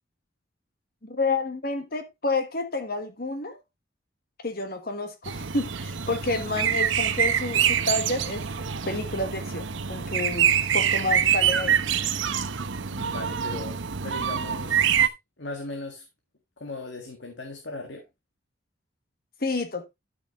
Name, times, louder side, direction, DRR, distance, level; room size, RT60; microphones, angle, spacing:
voice 1, 1.0-3.6 4.4-8.5 8.8-10.5 10.7-11.8 19.4-19.9, left 3 dB, 50° left, 1.3 m, -29 dB
sound 1, 5.3-15.1, right 8 dB, 80° right, 0.9 m, -25 dB
voice 2, 12.9-15.1 15.4-16.0 16.6-18.0, left 2 dB, 70° left, 1.8 m, -38 dB
12.5 x 6.2 x 3.0 m
head